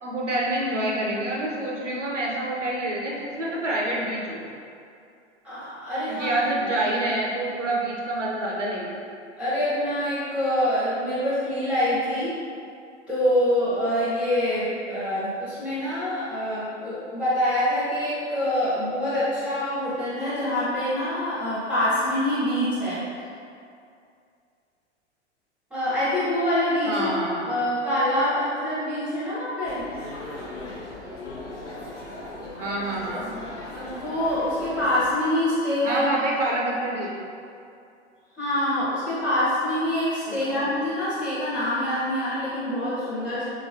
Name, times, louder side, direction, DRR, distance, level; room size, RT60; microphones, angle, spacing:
voice 1, 0.0-4.4 6.1-9.0 26.8-27.6 32.6-33.3 35.8-37.1 40.3-40.7, right 1 dB, 85° right, -4 dB, 0.7 m, -27 dB
voice 2, 5.4-6.9 9.4-12.4 13.1-23.0 25.7-27.2 27.4-29.9 33.7-36.0 38.4-43.4, left 1 dB, 5° right, -12 dB, 0.7 m, -25 dB
sound 1, 29.6-35.1, left 2 dB, 85° left, 0.8 m, -38 dB
3.6 x 3.1 x 2.5 m, 2.4 s
figure-of-eight pair, 95°, 35 cm